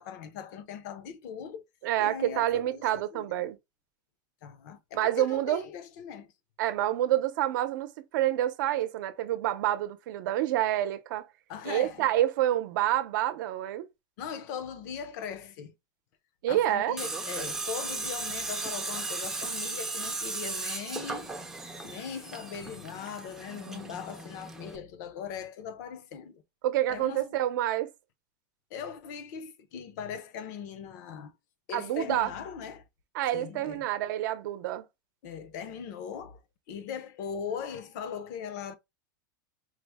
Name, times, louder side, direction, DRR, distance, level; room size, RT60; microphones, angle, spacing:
voice 1, 0.0-1.6 2.0-3.3 4.4-6.3 11.5-12.1 14.2-15.7 16.5-21.3 21.8-26.4 26.9-27.4 28.7-31.3 31.7-32.9 33.3-33.9 35.2-36.4 36.7-38.8, left 7 dB, 55° left, 0.7 m, -39 dB
voice 2, 1.8-3.6 4.9-5.7 6.6-11.3 11.7-13.9 16.4-17.0 26.6-27.9 31.7-32.3 33.1-34.8, right 13 dB, 65° right, 0.7 m, -28 dB
Tools, 17.0-24.8, right 3 dB, 5° right, 0.5 m, -36 dB
4.8 x 2.1 x 3.4 m
supercardioid pair, 160°, 11 cm